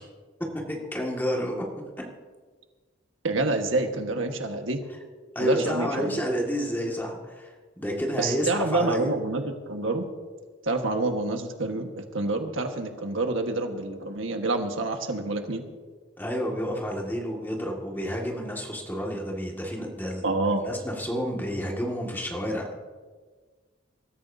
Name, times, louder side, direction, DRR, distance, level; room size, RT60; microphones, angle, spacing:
voice 1, 0.7-1.7 5.4-9.1 16.2-20.2 20.6-22.7, equal, 10° left, -1 dB, 1.9 m, -30 dB
voice 2, 3.2-4.8 5.4-6.2 8.2-10.0 10.6-15.6 20.2-20.6, right 2 dB, 80° right, 4 dB, 1.4 m, -27 dB
23.0 x 13.5 x 2.7 m, 1.5 s
head